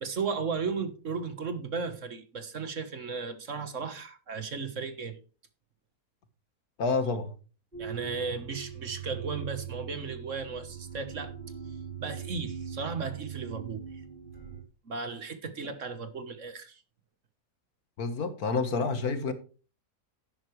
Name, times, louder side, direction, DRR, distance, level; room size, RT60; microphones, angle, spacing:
voice 1, 0.0-5.2 7.8-11.4 12.0-14.0 14.8-16.8, right 5 dB, 50° right, 1.6 m, -35 dB
voice 2, 6.8-7.3 18.0-19.3, left 4 dB, 70° left, 1.9 m, -28 dB
sound 1, 7.7-14.6, right 8 dB, 30° right, 2.3 m, -41 dB
11.5 x 9.7 x 3.3 m
omnidirectional pair, 1.7 m